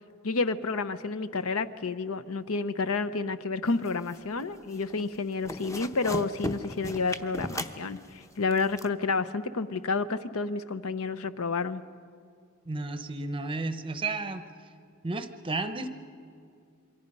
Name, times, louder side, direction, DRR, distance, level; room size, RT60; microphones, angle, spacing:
voice 1, 0.2-11.8, left 4 dB, 70° left, 13 dB, 0.7 m, -30 dB
sound 1, 3.8-4.4 4.7-5.0 5.3-8.9, left 1 dB, 15° left, 0.8 m, -36 dB
voice 2, 12.7-14.5 15.0-15.9, right 3 dB, 25° right, 10 dB, 0.7 m, -32 dB
28.0 x 23.0 x 5.4 m, 2.3 s
head